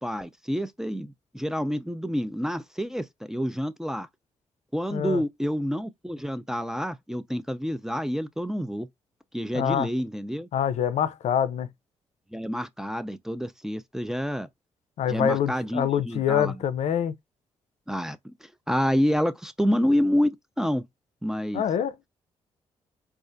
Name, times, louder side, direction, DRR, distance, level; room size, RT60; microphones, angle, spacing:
voice 1, 0.0-4.1 4.7-8.9 9.3-10.5 12.3-14.5 15.1-16.6 17.9-20.8 21.2-21.6, equal, 5° right, 0.5 m, -28 dB
voice 2, 4.9-5.2 9.5-9.9 10.5-11.7 15.0-17.1 21.5-21.9, left 9 dB, 70° left, 0.5 m, -25 dB
4.0 x 2.4 x 2.5 m
supercardioid pair, 55°, 12 cm